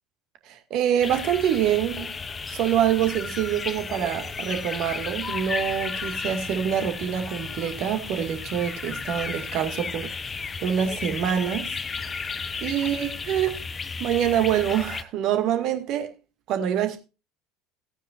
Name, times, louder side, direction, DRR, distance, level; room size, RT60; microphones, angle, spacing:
voice 1, 0.5-2.1 2.5-10.1 10.6-11.8 12.6-13.6 14.0-16.1 16.5-17.0, right 10 dB, 50° right, 2.1 m, -25 dB
sound 1, 1.0-15.0, left 5 dB, 25° left, 0.8 m, -33 dB
17.0 x 9.2 x 2.5 m
figure-of-eight pair, 70°, 0 cm